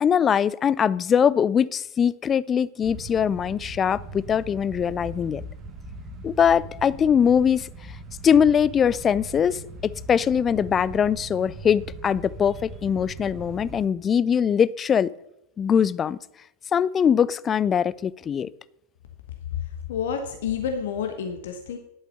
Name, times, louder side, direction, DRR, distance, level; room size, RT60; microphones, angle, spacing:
voice 1, 0.0-5.4 6.2-7.7 8.2-9.6 10.1-15.1 15.6-16.2 16.7-18.5, left 8 dB, 25° left, 21 dB, 0.4 m, -22 dB
sound 1, 2.8-13.9, right 2 dB, 30° right, 1.4 m, -40 dB
voice 2, 19.5-21.8, left 7 dB, 55° left, 6 dB, 1.2 m, -29 dB
11.0 x 8.0 x 5.6 m, 0.82 s
figure-of-eight pair, 90°, 0 cm